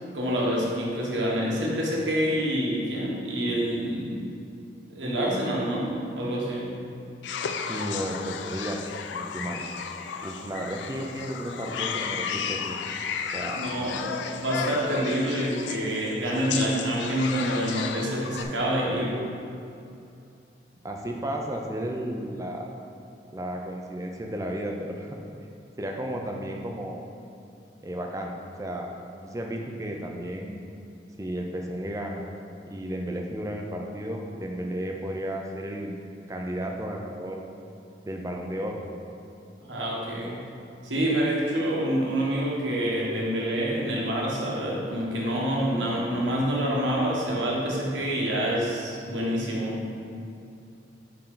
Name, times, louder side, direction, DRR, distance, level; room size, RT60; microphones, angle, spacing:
voice 1, 0.1-4.3 4.9-6.7 13.5-19.2 39.6-40.4 40.8-49.8, equal, 85° right, -4 dB, 1.4 m, -27 dB
sound 1, 7.2-18.4, left 6 dB, 75° left, 0.4 m, -34 dB
voice 2, 7.7-9.6 10.2-12.8 13.3-13.8 20.8-22.7 23.3-25.1 25.8-27.0 27.8-28.3 28.6-30.6 31.2-32.3 32.7-36.0 36.3-37.4 38.0-38.8, right 1 dB, 20° right, 1 dB, 0.5 m, -33 dB
8.7 x 3.8 x 3.9 m, 2.6 s
head